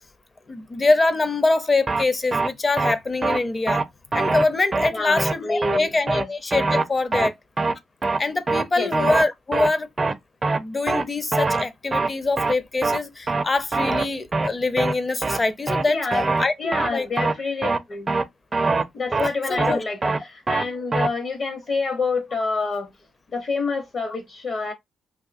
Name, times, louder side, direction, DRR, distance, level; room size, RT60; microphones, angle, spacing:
voice 1, 0.5-3.8 4.1-7.4 8.2-9.9 10.5-16.0 16.4-17.1 19.5-19.8, left 3 dB, 25° left, 0.5 m, -24 dB
sound 1, 1.9-2.0 2.3-2.5 2.8-2.9 3.2-3.4 3.7-3.8 4.1-4.4 4.7-4.9 5.2-5.3 5.6-5.8 6.1-6.2 6.5-6.8 7.1-7.3 7.6-7.7 8.0-8.2 8.5-8.6 8.9-9.2 9.5-9.7 10.0-10.1 10.4-10.6 10.9-11.0 11.3-11.6 11.9-12.1 12.4-12.5 12.8-13.0 13.3-13.4 13.7-14.0 14.3-14.5 14.8-14.9 15.2-15.4 15.7-15.8 16.1-16.4 16.7-16.9 17.2-17.3 17.6-17.8 18.1-18.2 18.5-18.8 19.1-19.3 19.6-19.7 20.0-20.2 20.5-20.6 20.9-21.1, right 3 dB, 30° right, 0.4 m, -23 dB
voice 2, 4.9-6.3 8.8-8.9 15.9-16.3 16.6-18.1 18.9-22.9 23.3-24.7, left 3 dB, 50° left, 0.9 m, -27 dB
3.5 x 2.8 x 2.5 m
cardioid pair, 90°, 0 cm